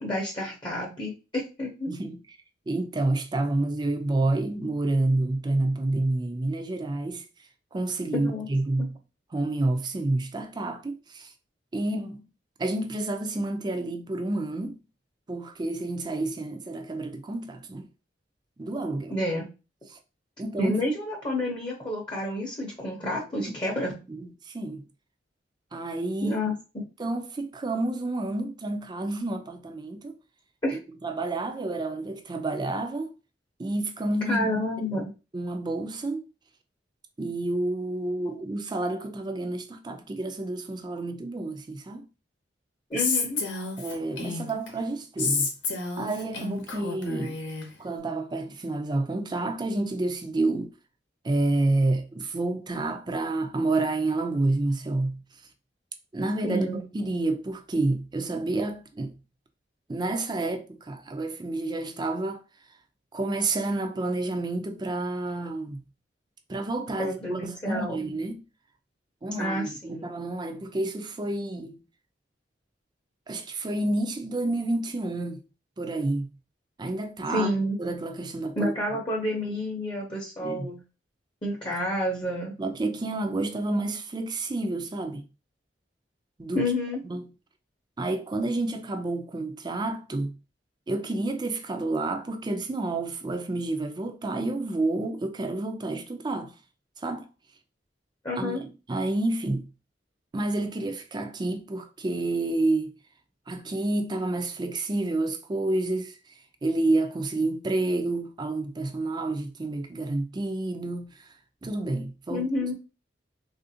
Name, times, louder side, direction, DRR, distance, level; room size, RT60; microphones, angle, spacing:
voice 1, 0.0-1.9 8.1-8.5 19.1-19.5 20.6-24.0 26.2-26.8 30.6-30.8 34.3-35.1 42.9-43.5 56.4-56.8 67.0-68.0 69.4-70.1 77.3-77.8 78.6-80.8 81.4-82.5 86.5-87.0 98.2-98.6 112.3-112.7, left 1 dB, 25° left, 0.7 m, -29 dB
voice 2, 1.9-2.2 2.7-7.3 7.7-9.0 9.3-11.3 11.7-12.2 12.6-14.8 15.3-17.9 18.6-19.2 20.4-20.8 23.4-23.5 24.1-24.8 25.7-26.4 27.0-30.2 30.7-33.1 33.6-34.5 35.3-36.2 37.2-42.1 43.8-45.5 46.0-47.4 47.8-50.7 51.2-55.2 56.1-59.1 59.9-62.4 63.1-65.8 66.5-68.4 69.2-71.8 73.3-75.4 75.8-76.3 76.8-77.5 77.8-78.7 80.4-80.7 82.6-85.2 86.4-86.6 87.1-87.3 88.0-90.3 90.9-96.5 97.0-97.3 98.4-99.7 100.3-102.9 103.5-106.1 106.6-111.3 111.6-112.5, right 2 dB, 25° right, 0.4 m, -29 dB
Female speech woman speaking, 43.0-44.7 45.2-47.7, left 4 dB, 85° left, 0.8 m, -30 dB
3.4 x 2.5 x 2.7 m
head